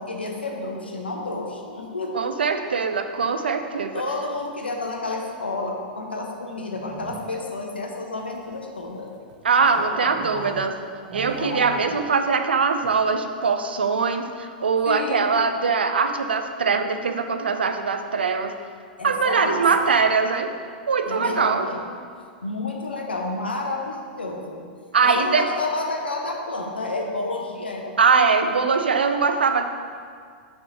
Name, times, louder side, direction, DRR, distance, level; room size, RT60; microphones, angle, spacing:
voice 1, 0.0-2.3 3.9-9.1 9.8-10.6 11.4-11.9 14.8-15.3 19.0-19.9 21.1-21.9 22.4-24.6 25.0-27.9, left 2 dB, 85° left, 1 dB, 1.0 m, -30 dB
voice 2, 2.1-4.0 9.4-10.7 11.1-18.5 19.0-20.5 20.9-21.7 24.9-25.5 28.0-29.6, right 5 dB, 75° right, 7 dB, 0.5 m, -22 dB
sound 1, 6.6-7.5 8.2-10.8 11.0-12.1 12.4-12.5 12.8-13.2, right 5 dB, 40° right, 0.9 m, -40 dB
6.2 x 3.8 x 6.2 m, 2.1 s
figure-of-eight pair, 100°, 5 cm